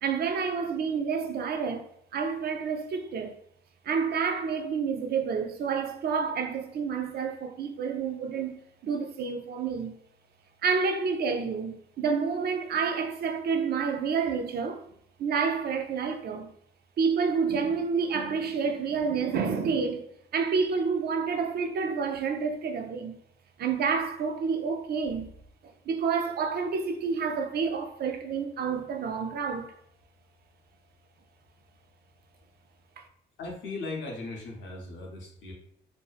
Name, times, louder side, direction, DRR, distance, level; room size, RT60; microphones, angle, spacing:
voice 1, 0.0-1.9 2.1-3.4 3.8-8.6 8.8-10.0 10.6-14.8 15.2-16.5 17.0-20.1 20.3-23.2 23.6-25.3 25.6-29.7 33.0-33.1, right 5 dB, 55° right, 0.4 m, -29 dB
voice 2, 33.4-35.5, left 3 dB, 75° left, 0.8 m, -38 dB
2.6 x 2.1 x 2.3 m
cardioid pair, 90°, 20 cm